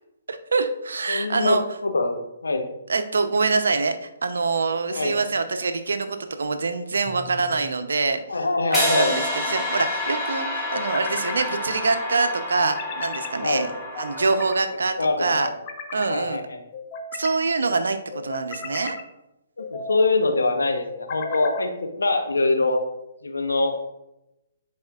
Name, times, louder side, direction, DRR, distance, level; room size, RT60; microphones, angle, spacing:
voice 1, 0.3-1.6 2.9-8.2 8.7-13.7 14.0-15.5 15.9-16.4 17.1-19.0, right 4 dB, 80° right, 8 dB, 0.7 m, -25 dB
voice 2, 1.1-1.6 1.8-2.6 4.9-5.2 8.3-9.1 13.4-13.7 15.0-15.5 16.0-16.6 19.6-22.8 23.2-23.7, left 3 dB, 85° left, 5 dB, 1.0 m, -23 dB
sound 1, 7.1-7.7 9.1-9.9 10.7-11.5 12.6-13.3 13.9-14.6 15.2-16.1 16.7-17.4 18.1-19.0 19.6-20.1 20.9-21.7, left 4 dB, 35° left, 0.8 m, -36 dB
sound 2, 8.7-14.9, left 1 dB, ahead, 1.9 m, -29 dB
10.5 x 4.3 x 2.4 m, 0.90 s
hypercardioid pair, 140°, 0 cm